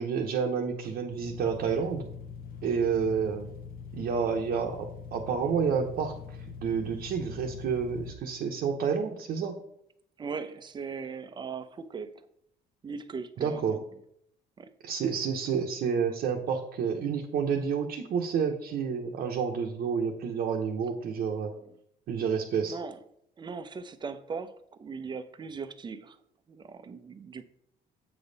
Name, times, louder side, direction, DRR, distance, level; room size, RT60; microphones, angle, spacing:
voice 1, 0.0-2.0 2.6-3.5 3.9-6.1 6.6-9.6 13.4-13.8 14.8-21.5 22.1-22.8, right 6 dB, 60° right, 0 dB, 0.9 m, -29 dB
sound 1, 1.1-8.1, left 6 dB, 60° left, 1.0 m, -43 dB
voice 2, 10.2-12.1 12.8-13.8 14.6-14.7 22.6-23.0 23.4-24.5 24.8-26.2 26.5-27.4, right 5 dB, 25° right, 10 dB, 0.6 m, -39 dB
7.9 x 5.3 x 4.0 m, 0.71 s
cardioid pair, 110°, 17 cm